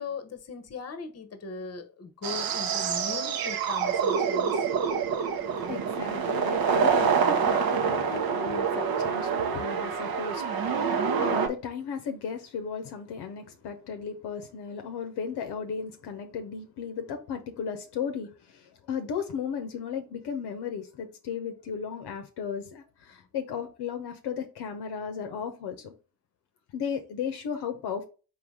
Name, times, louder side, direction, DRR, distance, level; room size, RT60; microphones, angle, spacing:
voice 1, 0.0-4.6, left 4 dB, 35° left, 0.9 m, -39 dB
sound 1, 2.2-11.5, right 6 dB, 50° right, 0.8 m, -26 dB
voice 2, 5.6-25.9 26.7-28.0, left 6 dB, 60° left, 0.8 m, -35 dB
3.9 x 2.9 x 4.6 m
hypercardioid pair, 45°, 45 cm